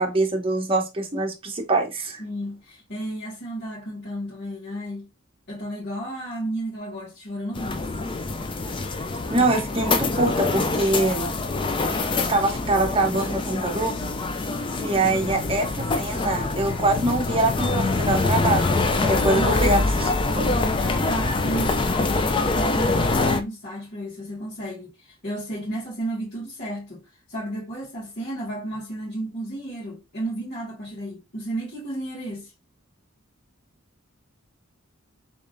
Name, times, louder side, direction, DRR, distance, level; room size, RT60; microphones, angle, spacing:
voice 1, 0.0-2.2 9.3-11.3 12.1-13.9 14.8-18.7 19.0-20.6, right 2 dB, 25° right, 0.8 m, -24 dB
voice 2, 2.2-5.1 5.5-7.9 19.3-19.9 20.8-25.0 25.2-32.5, right 1 dB, 55° left, 2.0 m, -33 dB
sound 1, 7.5-23.4, left 3 dB, 25° left, 0.4 m, -24 dB
3.6 x 3.5 x 2.6 m
head